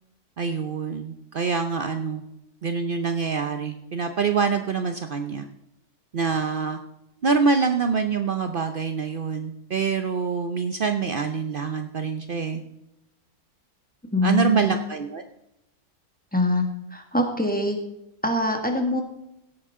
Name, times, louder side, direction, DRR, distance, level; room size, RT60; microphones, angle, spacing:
voice 1, 0.4-2.2 2.6-5.5 6.1-6.8 7.2-12.6 14.2-15.2, right 5 dB, 65° right, 7 dB, 0.5 m, -25 dB
voice 2, 14.1-14.8 16.3-16.6 16.9-17.8 18.2-19.0, left 1 dB, 5° left, 3 dB, 1.6 m, -23 dB
16.5 x 9.1 x 3.7 m, 0.84 s
omnidirectional pair, 1.8 m